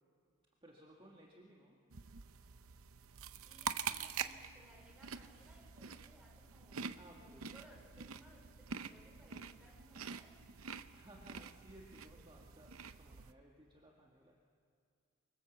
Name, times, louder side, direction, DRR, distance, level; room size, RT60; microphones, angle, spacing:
voice 1, 0.6-1.8 7.0-7.5 10.9-14.4, right 1 dB, 20° right, -2 dB, 1.6 m, -59 dB
sound 1, 1.9-13.3, right 6 dB, 80° right, 0.7 m, -46 dB
voice 2, 3.5-6.9 7.2-10.5, equal, 5° right, -1 dB, 3.8 m, -63 dB
25.0 x 23.0 x 7.3 m, 2.3 s
head